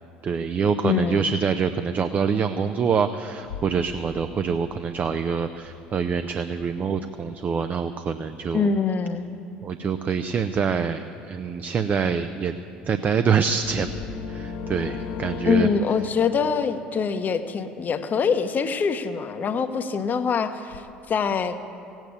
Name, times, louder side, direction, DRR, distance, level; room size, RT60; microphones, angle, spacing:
voice 1, 0.2-8.7 9.6-12.5 12.9-13.9 14.3-15.7, right 6 dB, 35° right, 9 dB, 0.7 m, -25 dB
voice 2, 0.8-1.4 8.5-9.3 15.4-21.6, left 5 dB, 40° left, 9 dB, 1.0 m, -24 dB
sound 1, 3.3-6.9 11.3-11.4 12.3-12.5 13.7-15.0 20.6-20.8, left 4 dB, 75° left, 0.6 m, -45 dB
sound 2, 13.6-17.6, left 6 dB, 55° left, 1.4 m, -36 dB
16.5 x 9.1 x 8.6 m, 2.6 s
hypercardioid pair, 65°, 5 cm